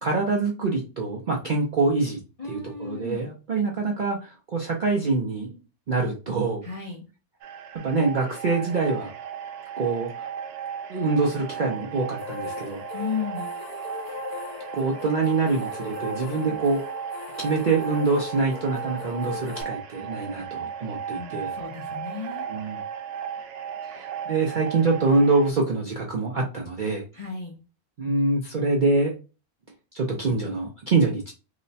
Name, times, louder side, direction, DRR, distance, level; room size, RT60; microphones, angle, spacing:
voice 1, 0.0-2.2 2.5-5.6 5.9-6.6 7.8-9.1 9.8-10.1 10.9-12.8 14.7-16.8 17.4-21.5 22.5-22.8 23.9-27.0 28.0-29.1 29.9-31.2, right 3 dB, 60° right, -1 dB, 0.5 m, -25 dB
voice 2, 2.4-3.3 6.6-7.1 12.9-13.5 21.1-22.5 27.1-27.6, left 5 dB, 40° left, -3 dB, 0.5 m, -34 dB
sound 1, 7.4-25.5, right 8 dB, 90° right, 1.1 m, -36 dB
sound 2, 12.2-19.6, left 7 dB, 90° left, 1.1 m, -39 dB
3.0 x 2.1 x 4.0 m, 0.31 s
omnidirectional pair, 1.6 m